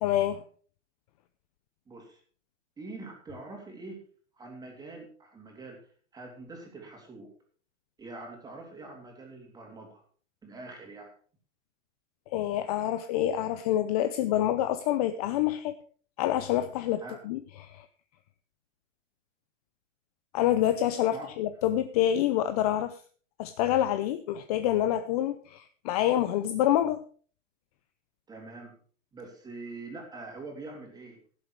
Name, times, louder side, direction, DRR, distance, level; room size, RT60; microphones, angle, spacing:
voice 1, 0.0-0.4 12.3-15.8 16.2-17.8 20.3-23.0 23.4-27.0, left 12 dB, 30° left, 0.6 m, -27 dB
voice 2, 1.9-2.2 2.8-4.0 4.3-5.8 6.1-7.3 8.0-10.0 10.4-11.1 17.0-17.2 21.1-21.3 28.3-28.7 29.1-31.2, right 3 dB, 10° right, 3.4 m, -44 dB
16.5 x 7.4 x 4.7 m
hypercardioid pair, 150°, 38 cm